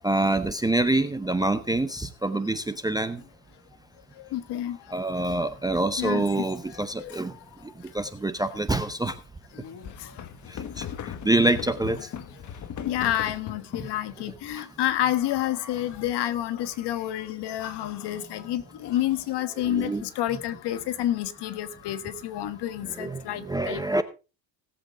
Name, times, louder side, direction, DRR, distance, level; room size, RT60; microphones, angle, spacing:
voice 1, 0.0-3.2 4.9-7.3 7.9-9.2 10.5-10.9 11.2-12.1 14.5-14.6 19.6-20.0 22.8-24.0, right 2 dB, 10° right, 0.7 m, -26 dB
voice 2, 4.2-4.8 6.0-7.4 10.0-10.1 10.9-11.0 12.8-24.0, left 12 dB, 55° left, 1.5 m, -29 dB
sound 1, 9.5-14.0 14.8-16.1 16.6-17.1 17.6-19.4, left 9 dB, 35° left, 1.3 m, -40 dB
18.5 x 7.9 x 3.7 m
cardioid pair, 120°, 48 cm